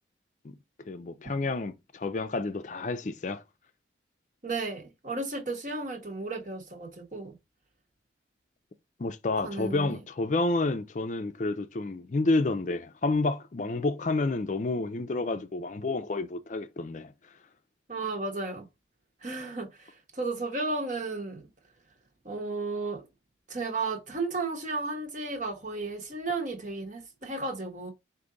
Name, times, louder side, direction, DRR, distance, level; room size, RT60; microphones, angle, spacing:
voice 1, 0.4-3.4 9.0-17.1, left 2 dB, 40° left, 0.4 m, -30 dB
voice 2, 4.4-7.4 9.4-10.0 17.9-18.7 19.2-21.4 22.2-23.1 23.5-27.9, right 3 dB, 40° right, 1.1 m, -34 dB
5.0 x 2.6 x 3.8 m
head